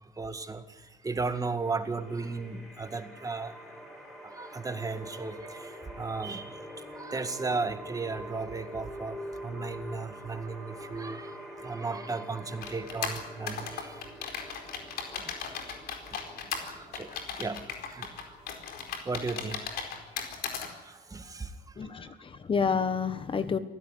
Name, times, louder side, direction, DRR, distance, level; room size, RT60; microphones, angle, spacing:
voice 1, 0.0-3.8 4.2-6.6 6.9-14.1 14.4-14.6 15.1-15.5 16.1-18.5 19.0-19.7 20.6-21.9, right 4 dB, 20° right, 9 dB, 1.9 m, -36 dB
sound 1, 1.6-20.6, equal, ahead, 7.8 m, -46 dB
sound 2, 12.6-20.7, left 6 dB, 65° left, 4.5 m, -37 dB
voice 2, 21.8-23.6, left 6 dB, 30° left, 12 dB, 1.3 m, -29 dB
25.0 x 16.0 x 10.0 m, 1.1 s
cardioid pair, 110°, 17 cm